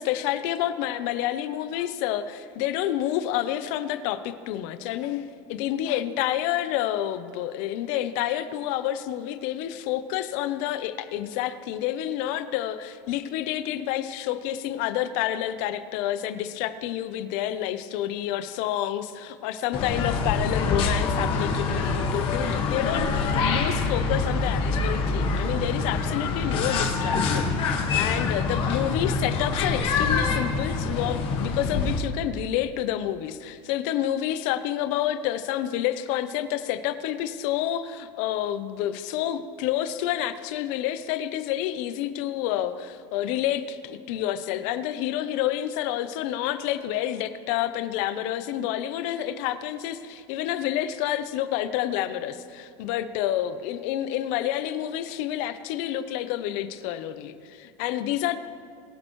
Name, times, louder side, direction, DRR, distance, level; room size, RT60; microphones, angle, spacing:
voice 1, 0.0-58.4, left 12 dB, 55° left, 11 dB, 0.7 m, -29 dB
sound 1, 19.7-32.0, left 4 dB, 35° left, 1.6 m, -25 dB
22.0 x 7.7 x 3.1 m, 2.3 s
supercardioid pair, 160°, 15 cm